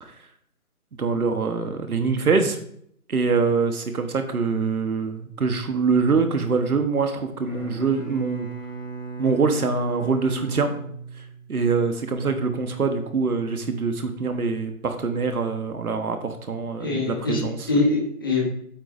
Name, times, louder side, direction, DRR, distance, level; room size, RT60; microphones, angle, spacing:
voice 1, 0.9-2.6 3.1-8.5 9.2-10.7 11.5-17.7, right 4 dB, 75° right, 7 dB, 1.2 m, -24 dB
Bowed string instrument, 7.4-11.7, right 5 dB, ahead, 1.6 m, -36 dB
voice 2, 16.8-18.5, left 3 dB, 15° left, -4 dB, 1.0 m, -24 dB
8.8 x 7.8 x 2.6 m, 0.67 s
figure-of-eight pair, 170°, 44 cm